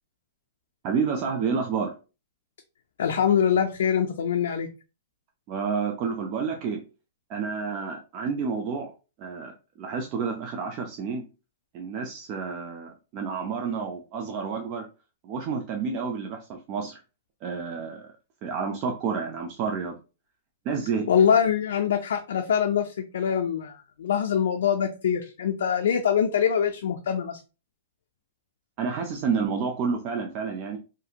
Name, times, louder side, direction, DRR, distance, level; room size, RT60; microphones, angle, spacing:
voice 1, 0.8-1.9 5.5-6.8 7.3-8.9 9.2-9.5 9.8-11.2 11.7-14.9 15.2-17.0 17.4-18.1 18.4-20.0 20.7-21.1 28.8-30.8, right 5 dB, 30° right, 2 dB, 0.3 m, -29 dB
voice 2, 3.0-4.7 21.1-27.4, left 8 dB, 80° left, 5 dB, 0.3 m, -24 dB
2.7 x 2.5 x 2.4 m, 0.32 s
supercardioid pair, 170°, 0 cm